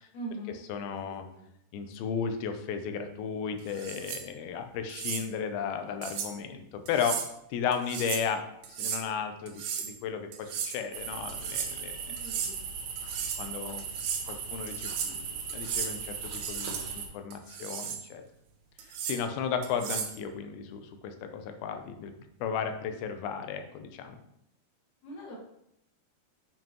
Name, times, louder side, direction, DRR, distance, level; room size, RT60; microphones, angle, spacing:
voice 1, 0.1-0.6 1.3-1.5 12.1-12.6 25.0-25.4, right 1 dB, 55° left, -2 dB, 2.4 m, -41 dB
voice 2, 0.7-1.3 1.7-7.2 7.5-8.4 8.7-12.0 13.4-13.8 14.3-18.2 19.0-22.1 22.4-24.2, left 7 dB, 80° left, 6 dB, 2.5 m, -34 dB
sound 1, 3.7-4.2 4.9-5.2 6.0-6.3 6.9-7.3 7.7-8.3 8.6-9.0 9.5-9.9 10.3-10.8 11.3-11.7 12.2-12.5 13.0-13.4 13.8-14.2 14.7-15.2 15.5-15.9 16.3-16.8 17.3-18.0 18.8-19.2 19.6-20.2, right 7 dB, 85° right, 1.6 m, -35 dB
sound 2, 10.9-17.1, right 6 dB, 70° right, 1.8 m, -38 dB
7.4 x 5.1 x 3.0 m, 0.77 s
omnidirectional pair, 4.5 m